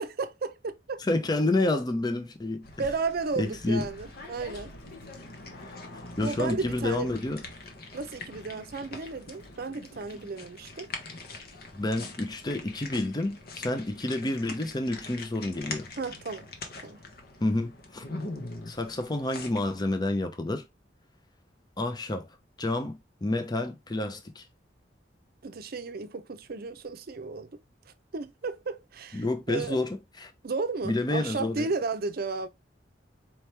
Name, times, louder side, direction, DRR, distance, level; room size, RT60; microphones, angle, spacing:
voice 1, 0.0-1.0 2.8-4.7 6.2-7.1 7.9-10.9 16.0-16.5 16.8-17.0 25.4-27.5 27.9-29.8 30.4-32.5, right 4 dB, 55° right, 0.6 m, -33 dB
voice 2, 1.0-2.7 3.4-3.9 6.2-7.4 11.7-15.9 17.4-18.0 18.7-20.6 21.8-22.3 22.6-24.5 29.1-30.3 30.8-31.7, left 2 dB, 25° left, 0.6 m, -29 dB
sound 1, 2.6-20.0, left 3 dB, 55° left, 1.0 m, -43 dB
sound 2, 3.1-10.3, equal, 75° left, 1.3 m, -52 dB
4.5 x 3.0 x 3.3 m
head